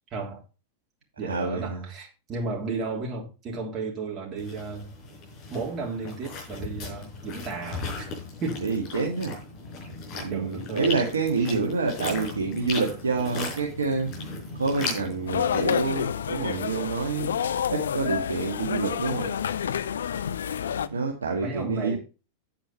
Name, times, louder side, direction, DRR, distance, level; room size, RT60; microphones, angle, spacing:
voice 1, 0.1-0.4 1.2-4.9 5.5-8.1 8.4-8.7 10.3-11.0 11.4-11.6 21.4-22.0, right 3 dB, 30° right, 3.3 m, -34 dB
voice 2, 1.2-1.8 8.6-9.4 10.1-14.1 14.5-17.4 17.7-19.4 20.9-22.0, right 4 dB, 75° right, 1.7 m, -27 dB
sound 1, 4.4-15.7, left 3 dB, 40° left, 5.0 m, -37 dB
sound 2, 15.3-20.9, left 8 dB, 65° left, 0.6 m, -29 dB
8.8 x 8.6 x 4.3 m
figure-of-eight pair, 90°, 0 cm